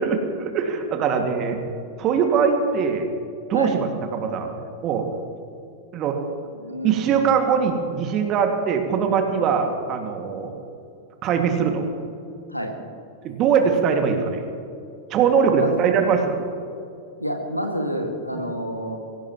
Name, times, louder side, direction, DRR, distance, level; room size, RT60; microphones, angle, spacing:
voice 1, 0.0-1.6 2.0-3.1 3.5-4.5 4.8-5.1 5.9-6.2 6.8-10.5 11.2-11.8 13.2-14.4 15.1-16.4 18.3-18.5, right 6 dB, 35° right, 4 dB, 2.1 m, -21 dB
voice 2, 6.6-7.3 12.5-12.7 15.6-15.8 17.2-19.0, equal, 90° left, 3 dB, 2.0 m, -29 dB
22.5 x 17.0 x 3.0 m, 2.5 s
figure-of-eight pair, 90°, 0 cm